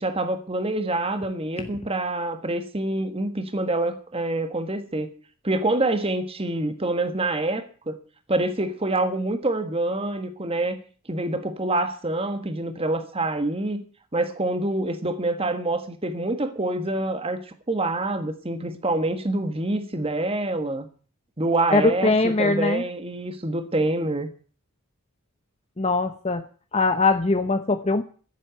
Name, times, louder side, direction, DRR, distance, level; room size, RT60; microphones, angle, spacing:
voice 1, 0.0-5.1 5.4-8.0 8.3-10.8 11.1-13.8 14.1-17.4 17.7-20.9 21.4-24.3, right 2 dB, 25° right, 8 dB, 1.5 m, -26 dB
voice 2, 21.7-22.8 25.8-26.4 26.7-28.0, left 3 dB, 30° left, 7 dB, 0.8 m, -21 dB
14.5 x 7.8 x 9.0 m, 0.42 s
head